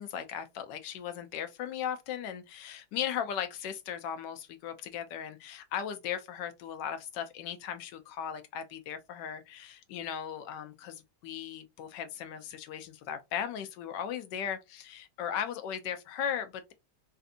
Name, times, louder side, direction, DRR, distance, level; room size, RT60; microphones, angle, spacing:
voice 1, 0.0-16.7, left 9 dB, 85° left, 1.3 m, -37 dB
3.3 x 2.7 x 2.5 m
omnidirectional pair, 1.8 m